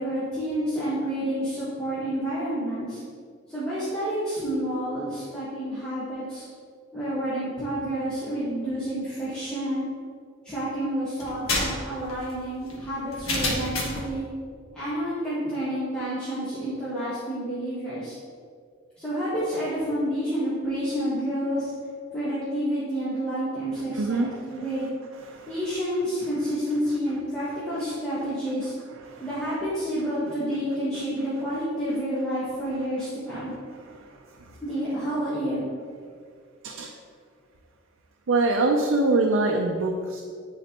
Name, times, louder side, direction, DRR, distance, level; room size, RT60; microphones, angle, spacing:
voice 1, 0.0-3.0 3.5-6.5 6.9-9.8 10.4-14.3 14.7-18.1 19.0-21.7 22.1-24.9 25.5-28.7 29.2-33.5 34.6-35.6, equal, 5° left, -13 dB, 1.4 m, -29 dB
sound 1, 11.2-14.1, left 2 dB, 85° left, 1.4 m, -29 dB
voice 2, 23.9-24.3 25.2-25.6 29.0-29.3 34.0-34.6 36.6-36.9 38.3-40.2, right 2 dB, 75° right, 1 dB, 0.5 m, -25 dB
10.5 x 4.0 x 3.0 m, 2.1 s
head